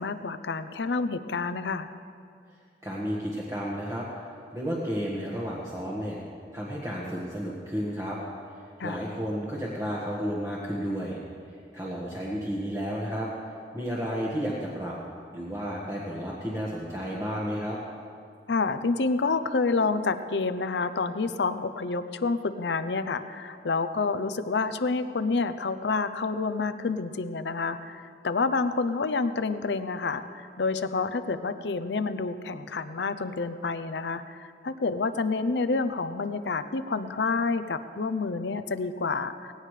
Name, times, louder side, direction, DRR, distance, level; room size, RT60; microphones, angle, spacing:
voice 1, 0.0-1.9 8.8-9.0 18.5-39.5, left 4 dB, 75° left, 12 dB, 0.6 m, -28 dB
voice 2, 2.8-4.1 4.5-6.2 6.5-8.2 8.8-11.2 11.5-13.3 13.7-15.0 15.3-17.8, equal, 15° right, -6 dB, 1.5 m, -32 dB
19.0 x 16.5 x 3.3 m, 2.4 s
head